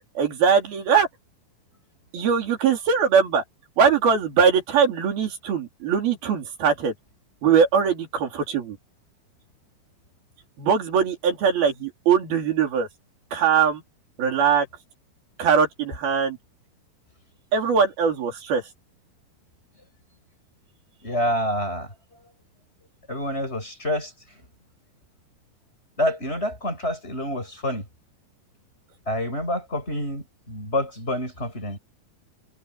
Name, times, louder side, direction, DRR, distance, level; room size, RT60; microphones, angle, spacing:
voice 1, 0.2-1.1 2.1-3.4 3.8-6.9 7.4-8.8 10.6-12.9 13.3-13.8 14.2-14.7 15.4-16.4 17.5-18.6, right 6 dB, 80° right, 5.5 m, -21 dB
voice 2, 21.0-21.9 23.1-24.1 26.0-27.9 29.1-31.8, left 1 dB, 15° left, 7.6 m, -27 dB
omnidirectional pair, 4.2 m